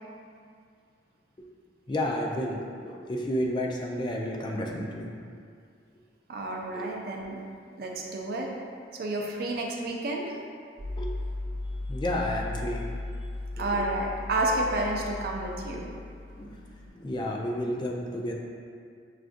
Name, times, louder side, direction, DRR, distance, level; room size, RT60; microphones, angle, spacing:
voice 1, 1.9-5.1 6.7-6.9 11.0-11.1 11.9-12.8 13.6-13.9 16.3-16.6 16.9-18.3, left 1 dB, 25° left, 0 dB, 0.3 m, -31 dB
voice 2, 6.3-7.4 7.8-8.5 8.9-10.4 13.6-15.9, right 2 dB, 55° right, 0 dB, 0.5 m, -30 dB
sound 1, 10.8-16.9, left 2 dB, 70° left, 1.5 m, -36 dB
6.1 x 2.4 x 2.5 m, 2.2 s
head